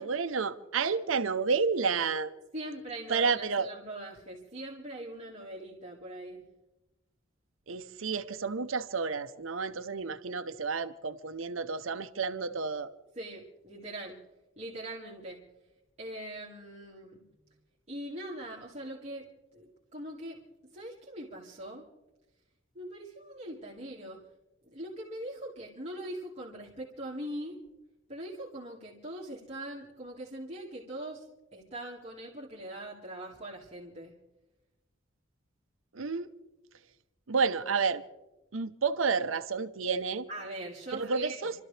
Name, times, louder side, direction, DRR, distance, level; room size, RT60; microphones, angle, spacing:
voice 1, 0.0-2.3 3.1-3.7 7.7-12.9 35.9-36.3 37.3-38.0 38.5-40.3 40.9-41.5, right 5 dB, 90° right, 0.8 m, -30 dB
voice 2, 2.5-6.5 13.2-14.2 14.6-15.4 16.0-17.2 17.9-19.3 19.5-20.4 20.7-21.8 22.7-24.2 24.6-27.6 28.1-31.3 31.5-34.2 40.3-41.5, right 1 dB, 35° right, 2.0 m, -41 dB
29.0 x 13.0 x 3.3 m
head